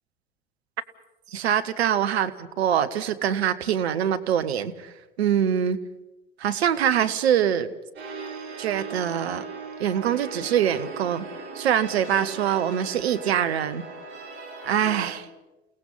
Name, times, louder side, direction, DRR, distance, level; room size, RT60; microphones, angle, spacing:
voice 1, 1.3-5.8 6.4-7.7 8.6-9.5 9.8-11.2 11.5-13.8 14.6-15.3, right 9 dB, 70° right, 11 dB, 1.1 m, -24 dB
sound 1, 7.9-15.1, right 4 dB, 35° right, 6.7 m, -38 dB
29.5 x 17.5 x 5.6 m, 1.0 s
figure-of-eight pair, 75°, 33 cm